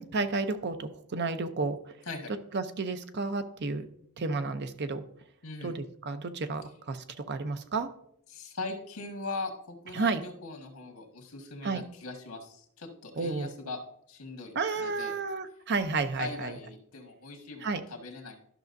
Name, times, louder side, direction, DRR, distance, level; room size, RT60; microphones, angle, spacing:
voice 1, 0.0-1.8 2.5-3.9 4.2-5.0 5.6-7.9 9.9-10.2 11.6-11.8 13.2-13.5 14.5-16.5 17.6-17.8, right 3 dB, 50° right, 10 dB, 0.6 m, -31 dB
voice 2, 5.4-5.8 8.3-13.8 14.1-15.1 16.2-18.4, left 3 dB, 85° left, 4 dB, 1.5 m, -40 dB
12.0 x 6.1 x 2.6 m, 0.69 s
head